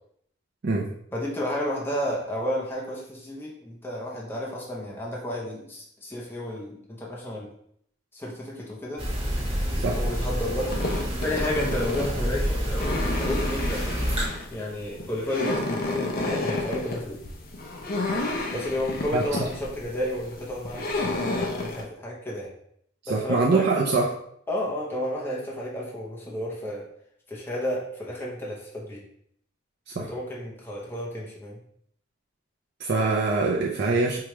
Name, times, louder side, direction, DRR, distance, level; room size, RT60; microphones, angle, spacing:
voice 1, 1.1-7.5 8.1-9.1 10.0-10.8 11.2-13.9 14.5-17.2 18.5-22.5 23.1-23.7 24.5-26.9 27.3-29.0 30.0-31.6, left 1 dB, 10° left, -4 dB, 0.7 m, -32 dB
sound 1, 9.0-14.3, equal, 30° right, 1.0 m, -28 dB
sound 2, 10.6-21.8, left 2 dB, 45° left, 0.5 m, -31 dB
voice 2, 19.1-19.5 23.0-24.1 29.9-30.1 32.8-34.2, right 3 dB, 55° right, -3 dB, 0.5 m, -24 dB
4.7 x 2.3 x 3.0 m, 0.68 s
head